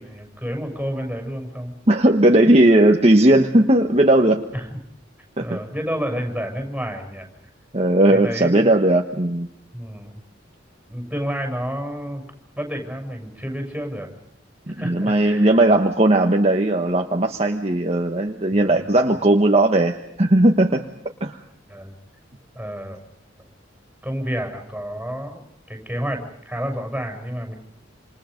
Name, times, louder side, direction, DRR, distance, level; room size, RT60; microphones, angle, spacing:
voice 1, 0.0-1.7 4.5-4.8 5.4-7.3 8.1-8.7 9.7-10.2 10.9-12.2 12.6-14.1 14.8-15.6 18.5-18.9 21.7-21.9 22.5-23.0 24.0-25.4 25.7-27.5, equal, 5° right, 3 dB, 7.2 m, -30 dB
voice 2, 1.9-4.4 5.4-5.6 7.7-9.5 14.7-20.8 21.2-21.4, right 1 dB, 35° right, 3 dB, 1.4 m, -17 dB
28.5 x 28.0 x 5.3 m, 0.73 s
head